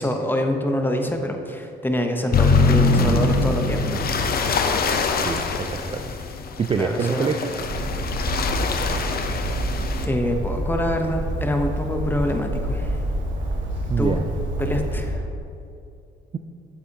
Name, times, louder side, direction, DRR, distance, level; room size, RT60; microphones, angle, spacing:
voice 1, 0.0-3.8 6.8-7.3 10.0-13.0 14.0-14.3 14.6-15.2, left 1 dB, 10° left, 4 dB, 0.8 m, -25 dB
sound 1, 2.3-10.1, left 3 dB, 50° left, 0.7 m, -23 dB
voice 2, 5.2-6.0 6.6-7.5 13.9-14.2, right 6 dB, 30° right, 6 dB, 0.3 m, -25 dB
Bird, 7.6-15.2, right 1 dB, 75° right, 1.3 m, -27 dB
8.2 x 8.0 x 2.9 m, 2.6 s
cardioid pair, 90°, 20 cm